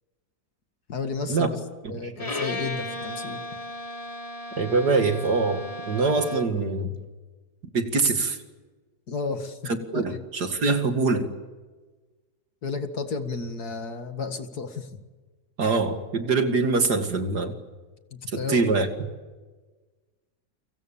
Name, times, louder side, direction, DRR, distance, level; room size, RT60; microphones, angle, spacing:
voice 1, 0.9-1.6 1.9-3.4 9.1-10.2 12.6-15.0 18.1-18.7, left 4 dB, 60° left, 7 dB, 2.4 m, -32 dB
Bowed string instrument, 2.2-6.7, left 1 dB, 20° left, 1.8 m, -35 dB
voice 2, 4.6-6.9 7.7-8.4 9.9-11.3 15.6-17.5 18.5-18.9, right 3 dB, 65° right, 6 dB, 2.7 m, -24 dB
29.0 x 25.0 x 7.2 m, 1.3 s
omnidirectional pair, 1.9 m